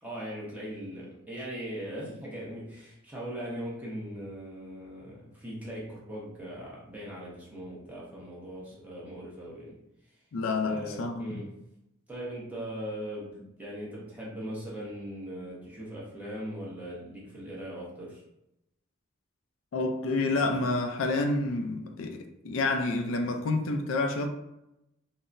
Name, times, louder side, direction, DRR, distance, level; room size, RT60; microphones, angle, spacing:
voice 1, 0.0-9.7 10.6-11.5 12.1-18.2, equal, 10° right, 0.8 m, -39 dB
voice 2, 10.3-11.4 19.7-24.3, left 3 dB, 80° left, 0.4 m, -29 dB
3.8 x 2.0 x 2.5 m
head